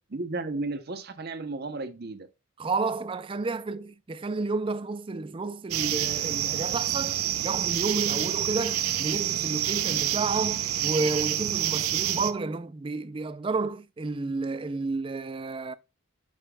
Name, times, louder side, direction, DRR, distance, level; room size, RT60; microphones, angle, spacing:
voice 1, 0.1-2.3, right 3 dB, 45° right, 0.7 m, -34 dB
voice 2, 2.6-15.7, right 3 dB, 25° right, 0.4 m, -31 dB
sound 1, 5.7-12.3, right 11 dB, 90° right, 0.7 m, -28 dB
8.7 x 6.5 x 2.2 m
head